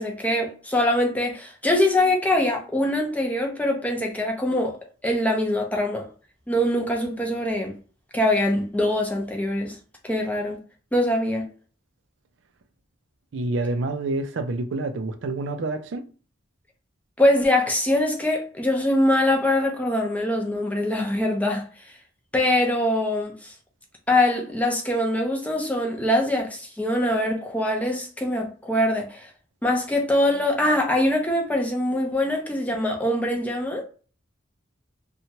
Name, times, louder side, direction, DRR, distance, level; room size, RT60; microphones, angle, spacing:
voice 1, 0.0-4.8 5.0-6.1 6.5-7.8 8.1-9.8 10.0-10.6 10.9-11.4 17.2-21.6 22.3-23.5 24.1-29.3 29.6-33.8, left 1 dB, 10° left, 0.5 m, -23 dB
voice 2, 13.3-16.0, right 2 dB, 70° right, 0.4 m, -27 dB
2.8 x 2.2 x 2.8 m
head